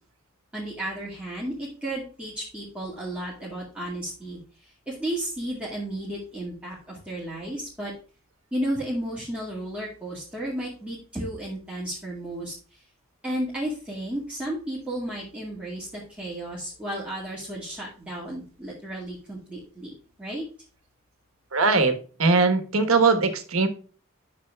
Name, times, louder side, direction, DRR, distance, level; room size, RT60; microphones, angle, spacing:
voice 1, 0.5-7.9 8.5-12.8 13.2-19.9 20.2-20.5, right 1 dB, 5° right, -6 dB, 2.0 m, -33 dB
voice 2, 21.5-23.7, right 4 dB, 75° right, 8 dB, 1.3 m, -21 dB
9.8 x 6.6 x 2.3 m, 0.40 s
head